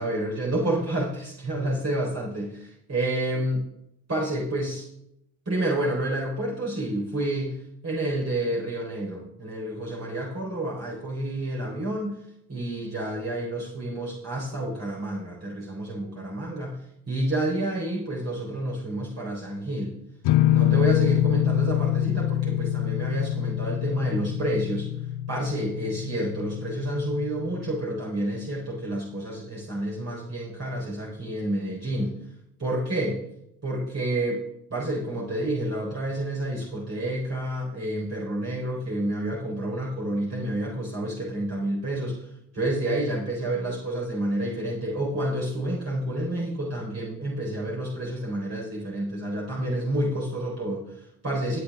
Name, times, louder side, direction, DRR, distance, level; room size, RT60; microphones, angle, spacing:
voice 1, 0.0-3.6 4.1-4.9 5.5-12.2 12.5-16.8 17.1-19.9 20.5-24.9 25.3-32.1 32.6-33.2 33.6-34.4 34.7-42.3 42.5-51.6, right 1 dB, 35° right, -5 dB, 4.3 m, -29 dB
sound 1, 20.2-27.8, left 12 dB, 70° left, 0.6 m, -25 dB
13.5 x 8.8 x 3.7 m, 0.75 s
supercardioid pair, 55°, 42 cm